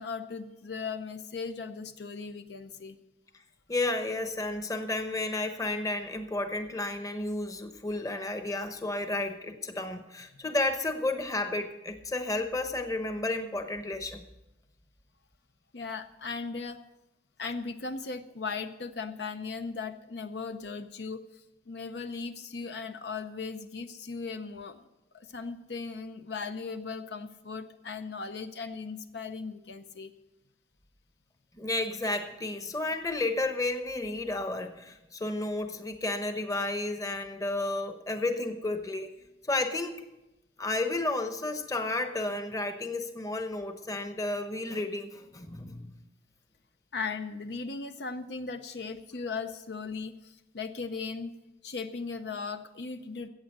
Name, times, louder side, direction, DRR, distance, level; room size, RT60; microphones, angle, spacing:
voice 1, 0.0-3.0 10.3-10.4 15.7-16.8 17.4-21.2 21.7-24.8 25.1-30.1 46.9-51.4 51.6-53.3, left 4 dB, 65° left, 8 dB, 0.7 m, -37 dB
voice 2, 3.7-14.2 31.6-39.1 39.5-40.0 40.6-45.9, left 2 dB, 20° left, 7 dB, 0.9 m, -32 dB
14.5 x 8.2 x 6.6 m, 0.96 s
head